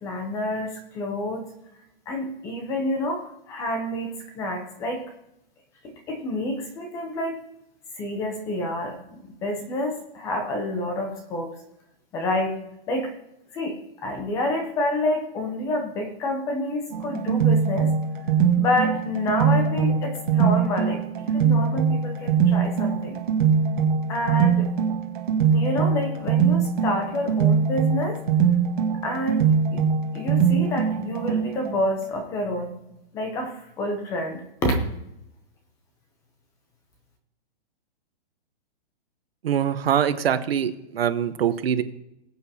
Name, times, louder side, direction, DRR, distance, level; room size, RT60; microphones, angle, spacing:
voice 1, 0.0-1.4 2.1-5.1 5.8-7.4 8.0-11.5 12.1-12.6 12.9-13.1 13.5-17.9 18.5-23.2 24.1-24.7 25.5-28.2 29.0-29.5 29.7-29.8 30.1-32.8 33.1-34.7, left 1 dB, 10° left, 5 dB, 0.7 m, -28 dB
sound 1, 16.9-31.8, right 6 dB, 55° right, 1.8 m, -22 dB
voice 2, 39.4-41.8, right 9 dB, 70° right, 11 dB, 1.1 m, -23 dB
20.5 x 8.4 x 2.9 m, 0.86 s
hypercardioid pair, 175°, 31 cm